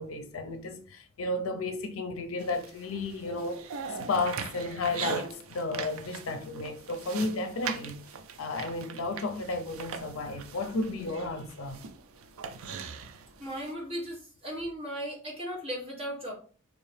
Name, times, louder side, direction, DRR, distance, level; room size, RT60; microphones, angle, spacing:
voice 1, 0.0-8.0 8.4-11.9, left 2 dB, 75° left, 0.5 m, -33 dB
sound 1, 2.4-13.7, right 6 dB, 80° right, 0.4 m, -41 dB
voice 2, 13.4-16.3, equal, 30° right, 1.2 m, -36 dB
3.5 x 2.8 x 3.2 m
head